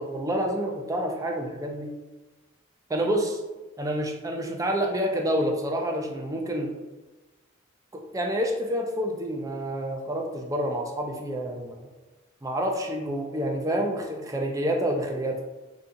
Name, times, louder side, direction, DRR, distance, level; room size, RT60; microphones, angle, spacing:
voice 1, 0.0-1.9 2.9-3.4 3.8-6.7 7.9-11.9 12.4-15.4, equal, 15° right, 2 dB, 0.4 m, -28 dB
2.7 x 2.4 x 3.7 m, 1.1 s
head